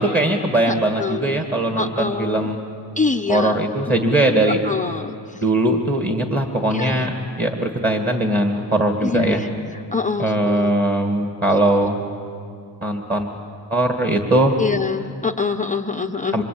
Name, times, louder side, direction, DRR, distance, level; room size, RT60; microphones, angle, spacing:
voice 1, 0.0-2.6 3.3-4.6 5.4-9.4 10.2-12.1 12.8-13.3 13.7-14.6 16.3-16.4, right 1 dB, 20° right, 4 dB, 2.2 m, -20 dB
voice 2, 1.0-1.4 1.8-2.5 3.0-3.5 4.7-5.1 6.7-7.1 9.0-10.7 14.6-16.4, left 4 dB, 15° left, 4 dB, 0.8 m, -24 dB
26.5 x 25.5 x 8.8 m, 2.4 s
cardioid pair, 115°, 45 cm